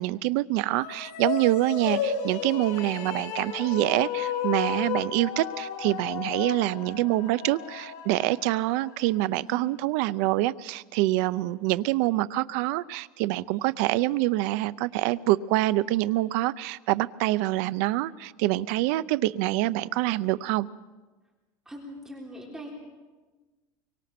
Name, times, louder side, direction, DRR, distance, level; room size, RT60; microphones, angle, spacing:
voice 1, 0.0-20.7, right 17 dB, 60° right, 15 dB, 0.6 m, -26 dB
sound 1, 0.7-9.2, left 8 dB, 60° left, 2.4 m, -33 dB
voice 2, 21.7-22.7, equal, 5° right, -2 dB, 3.6 m, -41 dB
24.0 x 23.5 x 6.0 m, 1.3 s
cardioid pair, 165°, 10 cm